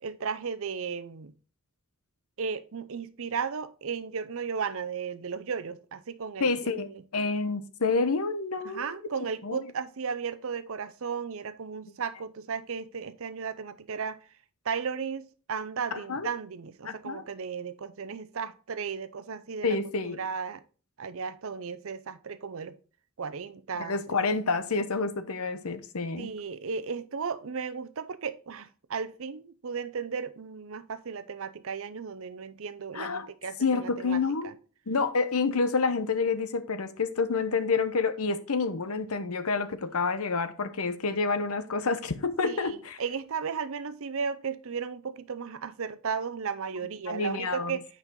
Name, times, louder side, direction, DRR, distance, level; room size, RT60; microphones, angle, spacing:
voice 1, 0.0-1.3 2.4-7.0 8.6-14.2 14.6-19.8 20.0-20.6 21.0-22.8 23.2-24.1 26.2-34.5 42.4-47.8, right 6 dB, 65° right, 0.6 m, -35 dB
voice 2, 6.4-8.9 9.4-9.6 15.9-16.3 16.9-17.2 19.6-20.2 23.8-26.3 32.9-33.3 33.6-34.5 34.9-43.0 47.1-47.8, left 4 dB, 80° left, 0.9 m, -28 dB
9.0 x 5.3 x 3.8 m
head